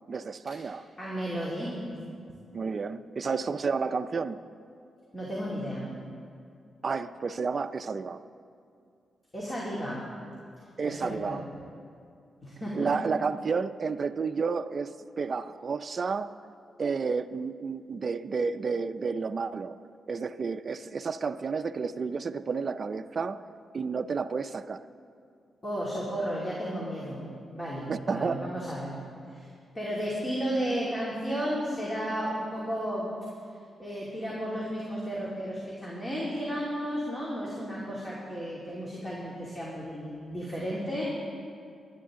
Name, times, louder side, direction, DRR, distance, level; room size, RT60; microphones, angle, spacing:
voice 1, 0.1-0.9 2.5-4.4 6.8-8.2 10.8-11.4 12.7-16.4 16.8-19.8 20.1-23.5 23.7-24.9 27.9-28.5, right 5 dB, 50° right, 9 dB, 0.4 m, -31 dB
voice 2, 1.0-1.8 5.1-5.9 9.3-10.0 10.8-11.4 12.4-12.9 25.6-27.2 27.5-28.9 29.3-29.5 29.7-33.1 33.8-41.0, equal, 25° left, -6 dB, 2.8 m, -33 dB
23.0 x 9.7 x 3.7 m, 2.4 s
cardioid pair, 80°, 0 cm